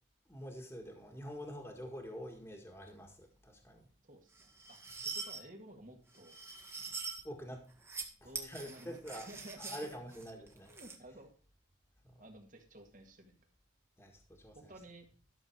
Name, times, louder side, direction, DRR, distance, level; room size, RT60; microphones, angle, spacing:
voice 1, 0.3-3.8 7.2-7.6 8.2-9.3 9.6-10.7 12.1-12.2 14.0-14.7, equal, 10° left, 2 dB, 1.8 m, -46 dB
voice 2, 4.1-6.4 8.2-9.8 10.7-11.3 12.2-13.4 14.7-15.1, right 1 dB, 40° right, 3 dB, 2.0 m, -54 dB
sound 1, 4.3-5.4 6.1-7.2 7.7-8.1 8.3-11.0, right 4 dB, 15° right, 1.4 m, -44 dB
12.0 x 6.7 x 4.6 m, 0.39 s
head